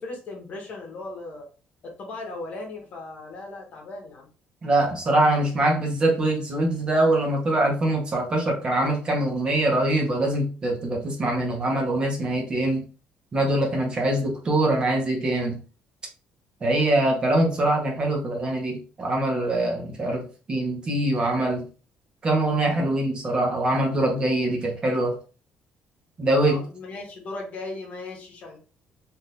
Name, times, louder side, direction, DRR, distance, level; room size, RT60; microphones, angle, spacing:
voice 1, 0.0-1.5 1.8-4.3 26.4-28.6, left 2 dB, 45° left, 1 dB, 1.0 m, -37 dB
voice 2, 4.6-12.8 13.3-15.6 16.6-21.6 22.2-25.2 26.2-26.6, right 1 dB, 30° right, 0 dB, 0.9 m, -23 dB
2.8 x 2.5 x 3.4 m, 0.36 s
cardioid pair, 150°, 3 cm